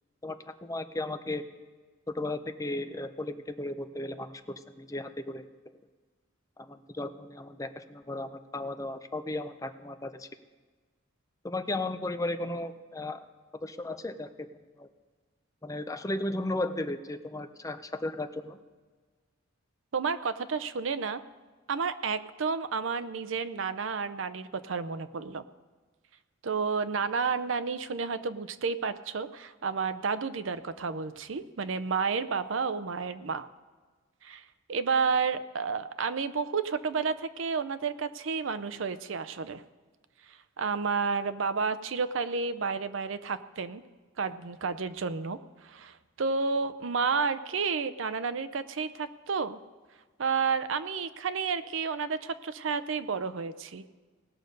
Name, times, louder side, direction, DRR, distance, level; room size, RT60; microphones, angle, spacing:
voice 1, 0.6-1.4 2.1-5.5 6.6-10.3 11.4-13.2 13.6-14.5 14.8-14.9 15.6-18.6, left 2 dB, 15° left, 9 dB, 0.5 m, -35 dB
voice 2, 19.9-21.2 21.7-25.4 26.4-33.5 34.2-34.4 34.7-39.6 40.6-43.8 44.2-49.6 50.2-53.9, right 5 dB, 70° right, 13 dB, 0.6 m, -31 dB
18.5 x 6.6 x 5.3 m, 1.4 s
head